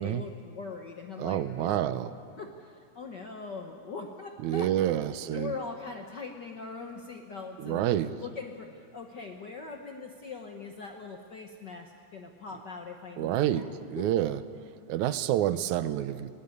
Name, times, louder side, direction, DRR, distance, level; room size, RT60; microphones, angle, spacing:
voice 1, 0.0-1.9 2.4-7.8 8.2-13.7 14.0-14.1, left 4 dB, 60° left, 4 dB, 1.1 m, -41 dB
voice 2, 1.2-2.1 4.4-5.5 7.6-8.1 13.2-14.4 14.9-16.3, right 12 dB, 80° right, 14 dB, 2.1 m, -28 dB
19.5 x 17.5 x 9.4 m, 2.3 s
omnidirectional pair, 3.4 m